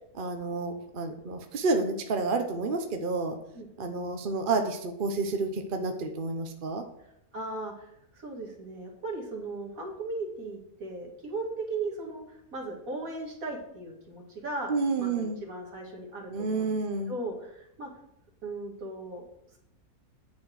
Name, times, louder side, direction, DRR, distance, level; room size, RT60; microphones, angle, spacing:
voice 1, 0.1-3.4 3.8-6.8 14.7-15.4 16.3-17.1, right 3 dB, 45° right, 5 dB, 0.8 m, -30 dB
voice 2, 3.5-3.9 7.3-7.9 8.1-14.7 15.0-16.8 17.1-17.9 18.4-19.2, right 2 dB, 65° right, 0 dB, 2.3 m, -37 dB
9.6 x 4.3 x 6.3 m, 0.78 s
omnidirectional pair, 1.6 m